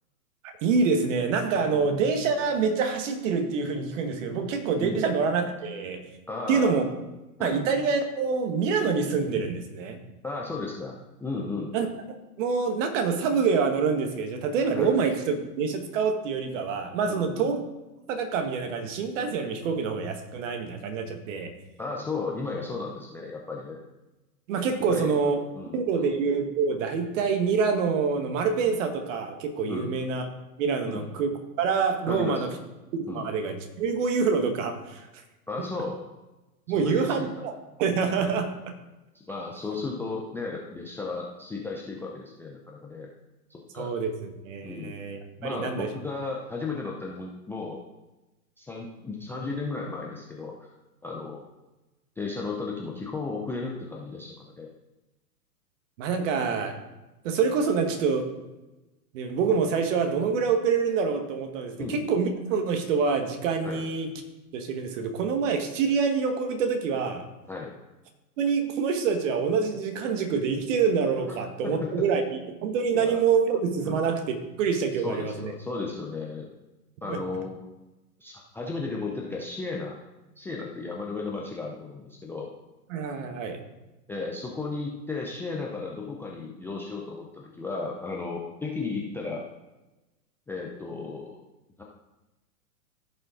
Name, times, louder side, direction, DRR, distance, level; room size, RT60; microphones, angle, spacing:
voice 1, 0.4-6.1 6.5-6.8 7.4-10.0 11.7-11.9 12.4-17.6 18.1-21.6 24.5-25.4 25.7-30.3 30.6-32.5 32.9-35.1 35.6-35.7 36.7-37.5 37.8-38.5 43.7-45.9 56.0-56.8 57.2-58.3 59.1-64.1 64.5-67.2 68.4-72.2 72.6-75.5 77.1-77.2 82.9-83.6, right 5 dB, 50° right, 6 dB, 1.7 m, -26 dB
voice 2, 6.3-6.8 7.4-7.6 10.2-11.7 14.7-14.9 17.1-17.5 21.8-23.8 24.8-25.3 25.5-26.1 29.7-29.9 30.8-31.1 32.1-32.6 33.1-33.3 35.5-36.0 36.7-37.5 38.2-38.4 39.1-43.1 43.5-43.9 44.6-45.0 45.4-47.8 48.6-50.7 51.0-51.4 52.2-54.7 61.7-62.0 63.6-63.8 67.5-67.7 71.6-72.0 72.9-73.2 73.8-74.0 75.0-76.5 77.0-77.5 78.2-80.0 80.4-82.5 84.1-89.4 90.5-91.4 91.8-91.9, left 3 dB, 5° left, -2 dB, 0.5 m, -34 dB
15.0 x 5.5 x 3.8 m, 1.1 s
hypercardioid pair, 115°, 47 cm